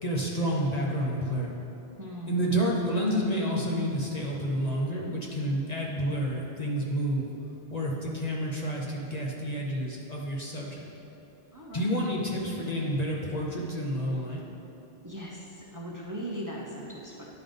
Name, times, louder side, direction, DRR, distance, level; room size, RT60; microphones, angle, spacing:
voice 1, 0.0-1.5 2.3-7.3 7.7-10.9 11.7-14.4, equal, 40° left, -2 dB, 0.9 m, -29 dB
voice 2, 2.0-2.4 11.5-12.0 15.0-17.2, equal, 20° right, -4 dB, 0.7 m, -39 dB
10.5 x 3.9 x 5.2 m, 3.0 s
omnidirectional pair, 1.1 m